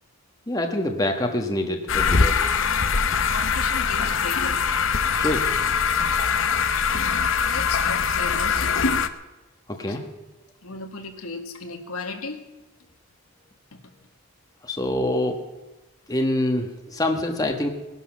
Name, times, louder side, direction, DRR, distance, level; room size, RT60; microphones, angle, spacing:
voice 1, 0.5-2.4 5.2-5.5 9.7-10.1 14.6-15.4 16.1-17.7, left 1 dB, 15° left, 3 dB, 1.3 m, -25 dB
sound 1, 1.9-9.1, left 6 dB, 60° left, 0.8 m, -22 dB
voice 2, 3.3-4.6 6.9-8.7 9.9-10.0 10.6-12.4 13.7-13.8, left 3 dB, 85° left, 4 dB, 1.9 m, -36 dB
19.0 x 11.5 x 6.1 m, 1.1 s
head